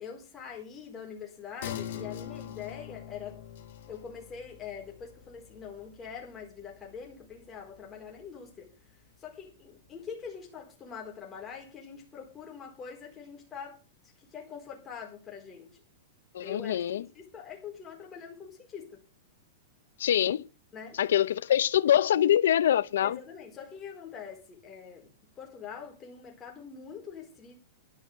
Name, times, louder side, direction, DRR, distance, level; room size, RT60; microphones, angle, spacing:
voice 1, 0.0-3.4 3.9-8.7 9.2-13.8 14.2-15.8 16.4-19.0 20.7-21.0 23.0-25.1 25.4-27.6, left 7 dB, 15° left, 4.1 m, -44 dB
sound 1, 1.6-8.6 9.0-9.1, left 10 dB, 60° left, 3.3 m, -44 dB
voice 2, 16.3-17.0 20.0-20.5 21.0-23.2, left 11 dB, 75° left, 0.7 m, -24 dB
12.0 x 6.3 x 7.8 m
supercardioid pair, 165°, 0 cm